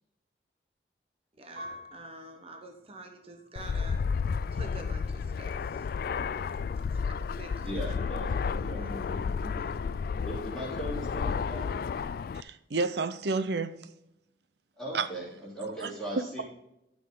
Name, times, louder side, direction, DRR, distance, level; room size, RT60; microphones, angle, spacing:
voice 1, 1.4-4.0 4.5-5.9 6.9-8.1 8.7-9.9, right 1 dB, 35° right, 0.9 m, -47 dB
Piano, 1.6-4.3 4.9-5.6, equal, 85° right, 2.3 m, -50 dB
Fixed-wing aircraft airplane, 3.6-12.4, left 5 dB, 55° left, 0.3 m, -32 dB
voice 2, 7.6-9.0 9.8-10.0 10.2-11.8 14.8-16.4, right 1 dB, 5° left, 3.2 m, -39 dB
voice 3, 12.3-13.8 14.9-15.1 15.8-15.9, right 4 dB, 65° right, 0.6 m, -30 dB
12.0 x 6.4 x 3.8 m
head